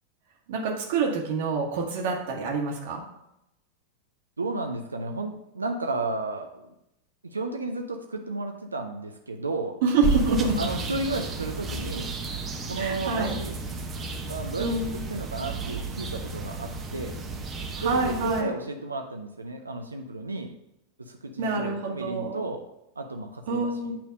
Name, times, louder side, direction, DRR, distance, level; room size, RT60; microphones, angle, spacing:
voice 1, 0.5-3.0 9.8-10.6 12.8-13.4 14.6-14.9 17.8-18.5 21.4-22.4 23.5-24.0, right 3 dB, 55° right, 0 dB, 1.4 m, -27 dB
voice 2, 4.4-6.6 7.2-9.8 10.3-12.1 12.7-13.6 14.3-17.2 17.8-20.5 21.0-22.7 23.0-24.0, right 2 dB, 80° right, 3 dB, 0.5 m, -33 dB
sound 1, 10.0-18.4, right 4 dB, 20° right, 0.8 m, -32 dB
8.6 x 3.4 x 5.3 m, 0.86 s
figure-of-eight pair, 90°, 0 cm